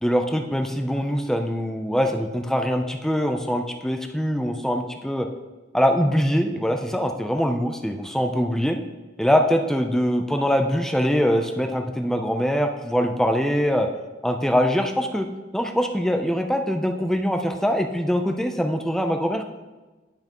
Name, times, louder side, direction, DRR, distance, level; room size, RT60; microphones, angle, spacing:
voice 1, 0.0-5.3 5.7-8.8 9.2-13.9 14.2-15.3 15.5-19.5, equal, 5° left, 5 dB, 0.5 m, -23 dB
10.5 x 5.5 x 3.0 m, 1.2 s
head